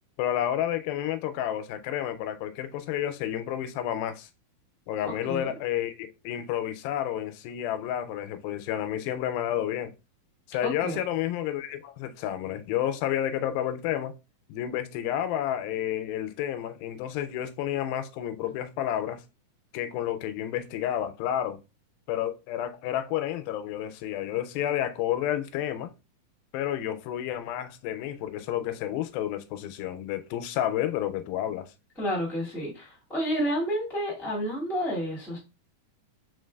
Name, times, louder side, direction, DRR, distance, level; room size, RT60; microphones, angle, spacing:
voice 1, 0.2-4.3 4.9-9.9 10.5-14.1 14.5-19.2 19.7-21.6 22.1-25.9 26.5-31.7, left 11 dB, 90° left, 2.4 m, -30 dB
voice 2, 5.2-5.6 10.6-11.0 32.0-35.4, equal, ahead, 0.5 m, -30 dB
5.0 x 3.8 x 2.2 m
omnidirectional pair, 4.1 m